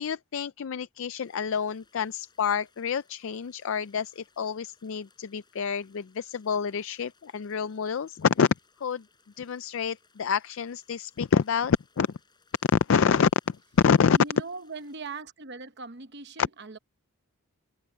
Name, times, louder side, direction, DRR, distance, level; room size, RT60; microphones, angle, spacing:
voice 1, 0.0-8.5 8.8-9.0 9.4-12.1 12.7-13.6 13.8-14.2, left 6 dB, 60° left, 0.4 m, -27 dB
sound 1, 1.2-15.0, left 4 dB, 20° left, 7.3 m, -66 dB
voice 2, 14.1-16.8, right 4 dB, 50° right, 1.0 m, -40 dB
head